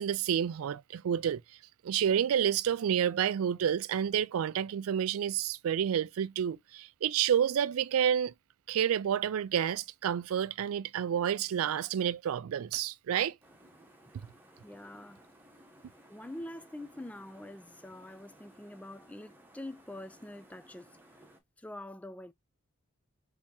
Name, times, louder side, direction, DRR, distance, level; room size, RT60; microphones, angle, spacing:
voice 1, 0.0-1.4 1.8-8.3 8.7-13.4, right 9 dB, 85° right, 0.3 m, -29 dB
sound 1, 13.4-21.4, equal, 10° right, 1.1 m, -59 dB
voice 2, 14.6-15.3 16.1-20.9 21.6-22.3, left 1 dB, 5° left, 0.3 m, -45 dB
6.4 x 2.8 x 2.7 m
head